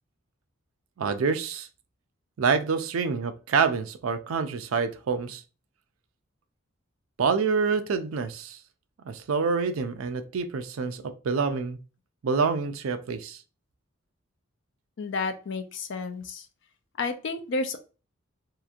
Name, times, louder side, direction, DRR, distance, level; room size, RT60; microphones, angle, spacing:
voice 1, 1.0-1.7 2.4-5.4 7.2-8.6 9.0-11.8 12.2-13.4, right 5 dB, 75° right, 9 dB, 0.4 m, -27 dB
voice 2, 15.0-16.5 17.0-17.8, left 3 dB, 55° left, 7 dB, 0.4 m, -31 dB
2.8 x 2.5 x 2.3 m, 0.34 s
head